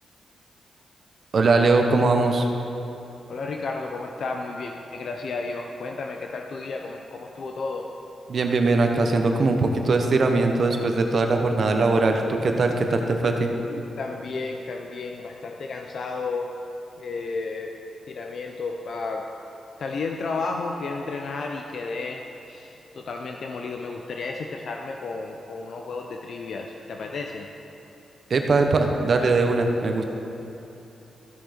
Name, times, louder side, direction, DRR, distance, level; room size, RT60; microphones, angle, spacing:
voice 1, 1.3-2.5 8.3-13.5 28.3-30.0, right 3 dB, 55° right, 4 dB, 1.0 m, -21 dB
voice 2, 3.3-7.9 13.7-16.5 17.0-17.8 18.1-19.3 19.8-27.5, left 3 dB, 65° left, 2 dB, 0.6 m, -32 dB
14.0 x 6.2 x 5.1 m, 3.0 s
cardioid pair, 85°, 0 cm